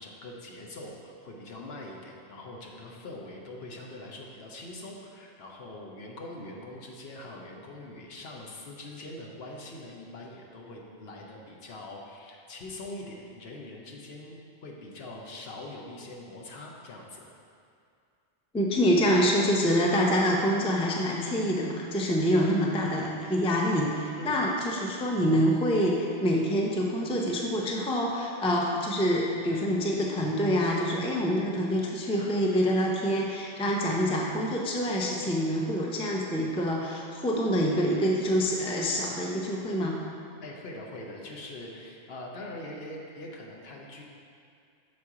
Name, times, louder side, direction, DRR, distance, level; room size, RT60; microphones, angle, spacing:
voice 1, 0.0-17.3 24.2-24.4 40.4-44.0, left 1 dB, 70° left, -1 dB, 1.0 m, -43 dB
voice 2, 18.5-40.0, equal, 10° left, -1 dB, 0.4 m, -26 dB
6.4 x 4.3 x 4.8 m, 2.4 s
omnidirectional pair, 1.1 m